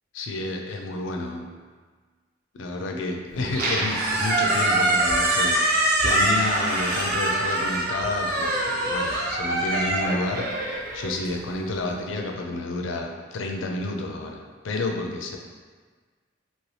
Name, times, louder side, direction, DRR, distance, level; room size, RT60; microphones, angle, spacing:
voice 1, 0.1-1.5 2.5-15.4, left 2 dB, 75° left, 2 dB, 0.4 m, -30 dB
Squeak, 3.4-11.6, right 1 dB, 50° right, 0.7 m, -24 dB
2.9 x 2.7 x 3.2 m, 1.5 s
head